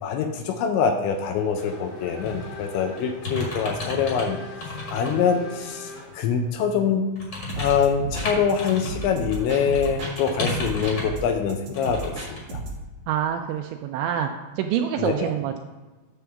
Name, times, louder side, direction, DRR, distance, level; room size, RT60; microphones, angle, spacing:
voice 1, 0.0-4.4 4.9-7.1 7.5-12.6 15.0-15.3, left 6 dB, 80° left, 5 dB, 2.8 m, -24 dB
Race car auto racing / Accelerating revving vroom, 1.1-6.6, left 3 dB, 65° left, 3.0 m, -42 dB
sound 1, 2.2-2.5 3.0-4.3 4.6-5.1 5.6-5.7 7.1-9.1 9.3-11.2 11.7-12.1 12.4-12.5, left 2 dB, 45° left, 1.7 m, -33 dB
sound 2, 7.5-10.2 10.5-12.8, right 2 dB, 65° right, 1.7 m, -34 dB
voice 2, 13.1-14.3 14.6-15.6, right 9 dB, 85° right, 5 dB, 2.6 m, -26 dB
9.7 x 3.5 x 6.9 m, 1.2 s
omnidirectional pair, 5.6 m